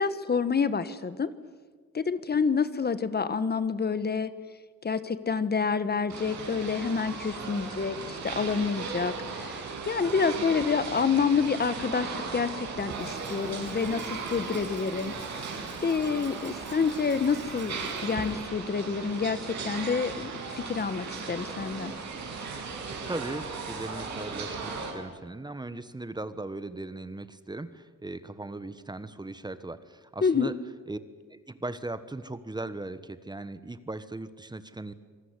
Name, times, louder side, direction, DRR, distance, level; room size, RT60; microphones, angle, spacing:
voice 1, 0.0-1.3 1.9-4.3 4.8-15.1 15.8-21.9 30.2-30.5, left 5 dB, 30° left, 13 dB, 1.3 m, -28 dB
sound 1, 6.1-24.9, right 4 dB, 65° right, 7.2 m, -37 dB
Water tap faucet / Sink (filling or washing), 12.7-18.9, right 3 dB, 40° right, 5.1 m, -46 dB
voice 2, 23.0-30.6 30.9-31.0 31.3-34.9, right 2 dB, 15° right, 13 dB, 1.3 m, -38 dB
26.5 x 19.5 x 9.8 m, 1.5 s
cardioid pair, 90°, 30 cm